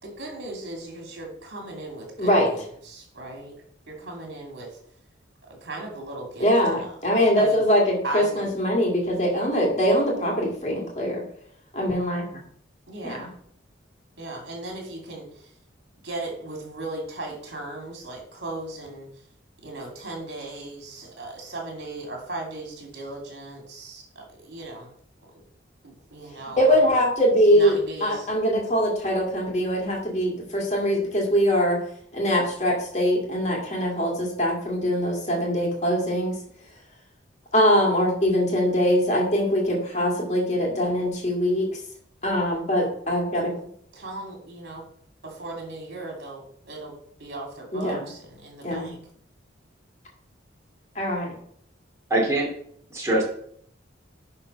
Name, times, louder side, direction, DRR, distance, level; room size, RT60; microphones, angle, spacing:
voice 1, 0.0-3.5 3.9-4.8 5.5-6.5 6.8-6.9 7.4-7.6 8.0-8.5 12.9-13.3 14.2-15.5 16.0-19.2 19.6-24.9 25.2-25.4 25.8-26.8 27.5-28.3 43.5-44.9 45.2-49.0, right 2 dB, 60° right, 1 dB, 2.7 m, -37 dB
voice 2, 2.2-2.5 6.4-11.2 11.7-12.4 13.0-13.2 26.6-31.8 32.1-36.4 37.5-41.7 42.2-43.5 47.7-48.0 48.6-48.9 51.0-51.3, equal, 35° left, -1 dB, 2.1 m, -22 dB
voice 3, 52.1-52.5 52.9-53.3, right 1 dB, 15° right, -3 dB, 2.3 m, -22 dB
10.5 x 3.8 x 5.6 m, 0.64 s
head